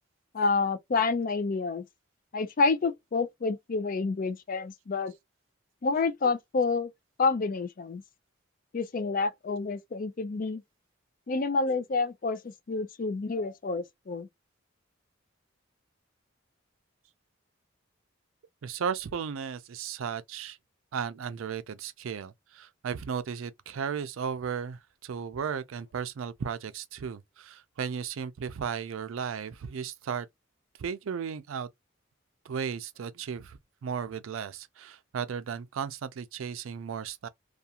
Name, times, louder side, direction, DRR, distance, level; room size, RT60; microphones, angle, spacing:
voice 1, 0.3-1.8 2.3-5.2 5.8-6.9 7.2-8.0 8.7-10.6 11.3-12.4 12.7-14.3, left 4 dB, 45° left, 0.4 m, -28 dB
voice 2, 18.6-20.6 20.9-30.3 30.8-31.7 32.4-37.3, right 7 dB, 85° right, 0.4 m, -35 dB
2.4 x 2.4 x 2.8 m
head